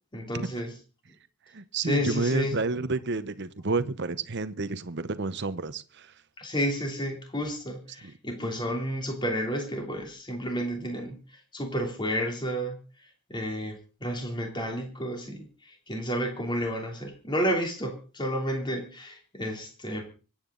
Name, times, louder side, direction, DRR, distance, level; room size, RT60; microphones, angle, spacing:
voice 1, 0.1-0.7 1.8-2.6 6.4-11.2 11.5-12.8 13.3-20.0, equal, 20° left, 3.2 m, -31 dB
voice 2, 1.5-6.1 8.0-8.1, right 3 dB, 50° right, 0.9 m, -30 dB
25.0 x 9.0 x 3.9 m
head